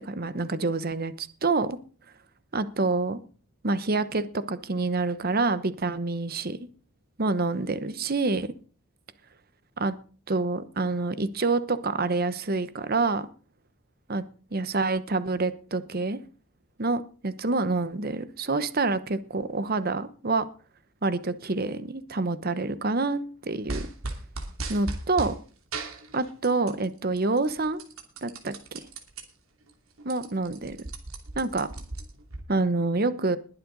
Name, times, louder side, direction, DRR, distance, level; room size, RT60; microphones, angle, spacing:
voice 1, 0.1-1.8 2.5-3.2 3.6-6.7 7.2-8.5 9.8-9.9 10.3-13.3 14.1-14.2 14.5-16.2 16.8-20.5 21.0-23.9 24.7-25.3 26.1-27.8 28.2-28.9 30.0-30.8 31.3-31.7 32.5-33.4, right 3 dB, 45° right, 13 dB, 1.0 m, -27 dB
sound 1, 23.7-25.3 25.7-26.9 27.2-29.2 29.7-29.8 30.0-32.4, right 2 dB, 80° right, 2.8 m, -36 dB
21.0 x 7.7 x 4.0 m, 0.38 s
head